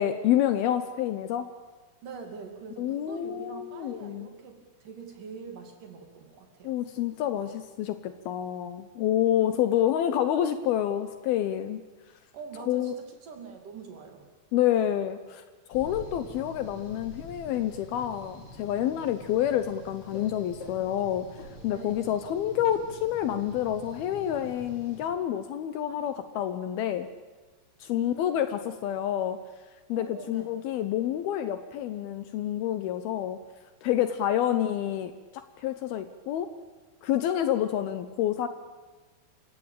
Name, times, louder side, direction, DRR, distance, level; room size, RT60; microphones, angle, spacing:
voice 1, 0.0-1.5 2.8-4.3 6.6-11.8 12.7-12.9 14.5-15.4 15.7-21.3 21.6-27.1 27.8-29.4 29.9-33.4 33.8-36.5 37.0-38.5, left 11 dB, 70° left, 11 dB, 2.5 m, -28 dB
voice 2, 2.0-6.7 12.3-14.2 21.7-22.0 27.9-28.4 29.9-30.5 34.5-34.7, right 5 dB, 50° right, 5 dB, 3.9 m, -44 dB
sound 1, 15.7-25.0, left 1 dB, 90° left, 6.9 m, -46 dB
27.5 x 16.0 x 9.0 m, 1.3 s
omnidirectional pair, 5.0 m